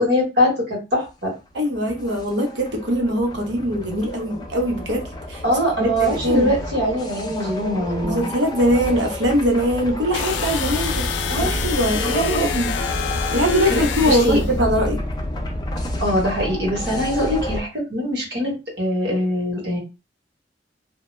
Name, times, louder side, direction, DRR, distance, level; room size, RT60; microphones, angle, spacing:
voice 1, 0.0-1.3 5.4-8.3 11.3-11.6 12.0-12.5 13.7-14.4 16.0-19.8, equal, 65° right, 1.1 m, -22 dB
sound 1, 1.5-17.6, left 1 dB, 25° left, 0.4 m, -29 dB
voice 2, 1.5-5.4 5.8-6.5 8.0-11.1 11.5-12.7 13.3-15.0, equal, 80° right, 0.8 m, -22 dB
sound 2, 10.1-14.5, left 7 dB, 90° left, 0.3 m, -27 dB
2.1 x 2.1 x 3.0 m
head